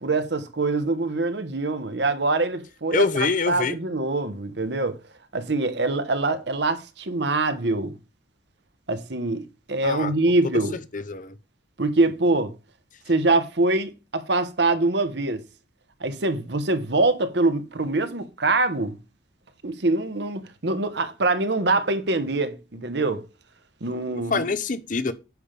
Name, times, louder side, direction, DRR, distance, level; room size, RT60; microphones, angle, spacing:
voice 1, 0.0-5.0 5.3-7.9 8.9-9.4 9.7-10.8 11.8-12.5 13.1-15.4 16.0-19.0 19.6-23.2 23.8-24.5, right 2 dB, 70° right, 1.2 m, -24 dB
voice 2, 2.9-3.8 9.8-10.1 10.9-11.4 24.1-25.1, left 4 dB, 45° left, 0.7 m, -25 dB
9.5 x 3.5 x 6.8 m
head